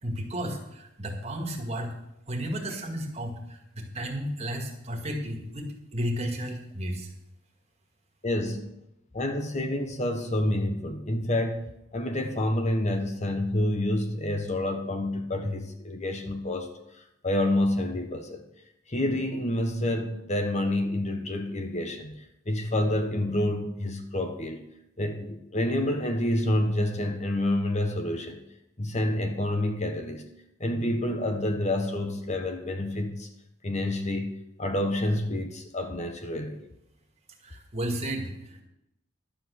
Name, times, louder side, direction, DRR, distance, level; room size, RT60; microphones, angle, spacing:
voice 1, 0.0-1.9 2.3-7.1 37.4-38.6, equal, 30° right, 2 dB, 2.1 m, -33 dB
voice 2, 8.2-8.7 9.1-18.4 18.9-24.6 25.0-28.4 28.8-30.2 30.6-33.3 33.6-36.6, left 1 dB, 35° left, 6 dB, 1.1 m, -28 dB
11.5 x 7.8 x 6.3 m, 0.84 s
head